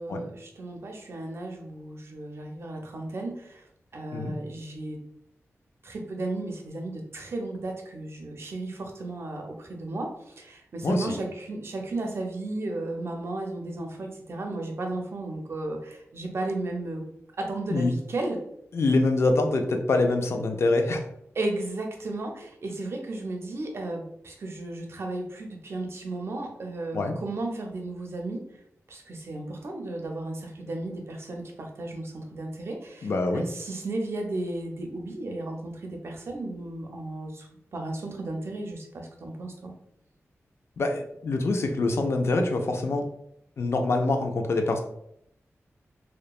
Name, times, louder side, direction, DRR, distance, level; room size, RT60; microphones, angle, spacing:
voice 1, 0.0-3.6 3.9-5.0 5.8-17.0 17.4-18.4 21.4-28.4 28.9-39.7, right 2 dB, 55° right, 2 dB, 0.5 m, -34 dB
voice 2, 10.8-11.1 17.7-17.9 18.7-21.0 26.9-27.1 33.0-33.4 40.8-43.1 43.6-44.8, left 2 dB, 55° left, 4 dB, 0.3 m, -25 dB
2.9 x 2.1 x 2.3 m, 0.73 s
wide cardioid pair, 150°, 5 cm